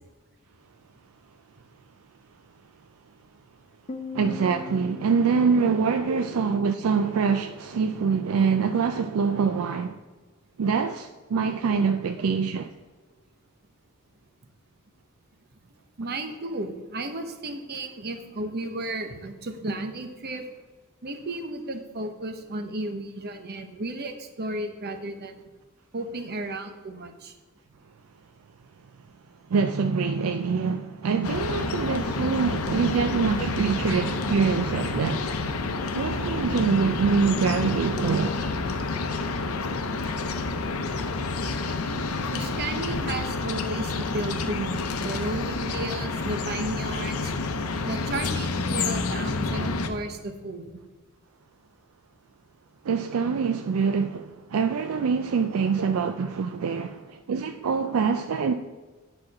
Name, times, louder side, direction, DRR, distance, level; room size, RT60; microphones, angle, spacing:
Piano, 3.9-7.3, left 5 dB, 30° left, 0.5 m, -41 dB
voice 1, 4.1-10.0 10.6-12.7 29.5-35.4 35.9-38.8 52.8-58.6, right 5 dB, 70° right, 0.4 m, -25 dB
voice 2, 16.0-20.4 21.0-25.4 25.9-27.3 32.6-32.8 33.4-33.7 42.3-47.3 47.9-50.7 55.5-55.9 58.4-58.5, right 2 dB, 50° right, 0.9 m, -34 dB
sound 1, 31.2-49.9, left 3 dB, 80° left, 0.7 m, -29 dB
8.8 x 4.4 x 5.7 m
head